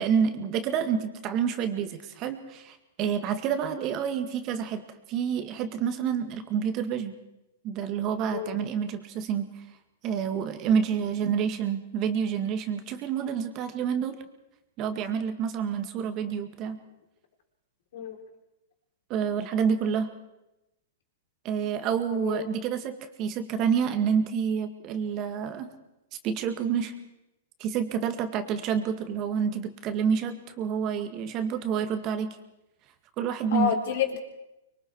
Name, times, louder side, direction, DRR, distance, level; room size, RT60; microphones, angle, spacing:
voice 1, 0.0-4.8 5.1-7.1 7.6-9.5 10.0-14.2 14.8-16.8 19.1-20.1 21.4-25.7 26.2-26.9 27.6-32.4 33.2-33.8, right 7 dB, 35° right, 8 dB, 2.1 m, -28 dB
voice 2, 22.1-22.5 33.5-34.2, left 8 dB, 65° left, 3 dB, 4.0 m, -29 dB
25.0 x 22.5 x 4.8 m, 0.92 s
hypercardioid pair, 130°, 0 cm